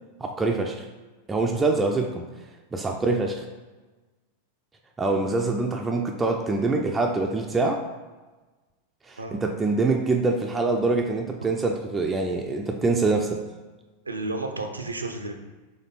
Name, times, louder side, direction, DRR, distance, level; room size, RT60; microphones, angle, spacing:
voice 1, 0.2-0.9 1.3-2.3 2.7-3.4 5.0-7.8 9.1-13.4, right 3 dB, 15° right, 2 dB, 0.4 m, -25 dB
voice 2, 14.1-15.3, right 2 dB, 80° right, 4 dB, 0.5 m, -32 dB
4.2 x 3.2 x 3.9 m, 1.2 s
figure-of-eight pair, 90°, 0 cm